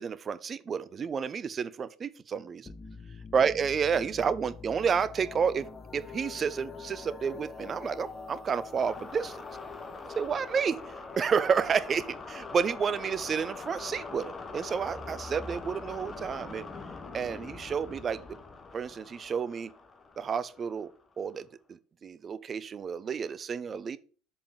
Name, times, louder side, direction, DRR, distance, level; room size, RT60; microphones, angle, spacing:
voice 1, 0.0-2.7 3.3-9.4 10.0-10.8 11.2-12.0 12.4-16.7 17.1-18.2 18.7-19.7 20.2-24.0, right 6 dB, 30° right, 0.5 m, -30 dB
sound 1, 2.7-21.1, left 4 dB, 25° left, 1.1 m, -43 dB
6.8 x 5.1 x 4.9 m
figure-of-eight pair, 65°, 0 cm